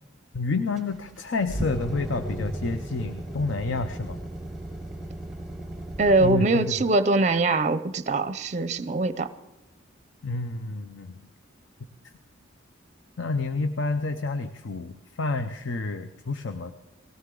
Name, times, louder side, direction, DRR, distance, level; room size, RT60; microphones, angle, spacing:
voice 1, 0.3-4.2 6.2-6.8 10.2-11.2 13.2-16.7, left 3 dB, 70° left, 8 dB, 0.6 m, -29 dB
sound 1, 0.8-6.3, right 1 dB, ahead, 0.9 m, -35 dB
voice 2, 6.0-9.3, right 2 dB, 35° right, 13 dB, 0.5 m, -22 dB
19.0 x 16.5 x 3.8 m, 0.93 s
head